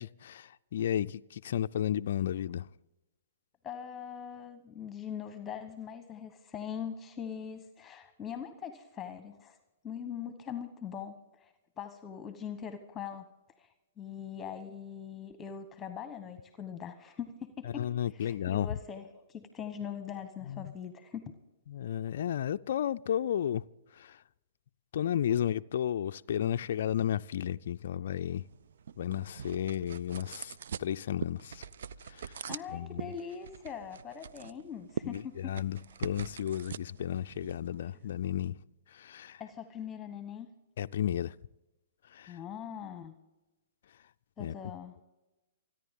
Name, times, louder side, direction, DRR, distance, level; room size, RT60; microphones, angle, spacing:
voice 1, 0.0-2.7 17.6-18.7 20.4-20.7 21.7-23.6 23.9-24.2 24.9-28.4 29.0-31.6 32.1-32.4 32.7-33.1 35.0-38.6 38.9-39.4 40.8-41.3 42.1-42.4 44.4-44.5, left 10 dB, 60° left, 0.4 m, -33 dB
voice 2, 3.6-9.6 9.8-13.3 13.6-13.7 14.0-21.3 32.5-35.6 39.4-40.5 42.3-43.1 44.4-45.0, left 8 dB, 15° left, 1.1 m, -42 dB
sound 1, 28.3-38.5, right 7 dB, 65° right, 0.4 m, -44 dB
28.0 x 10.0 x 3.7 m
figure-of-eight pair, 120°, 0 cm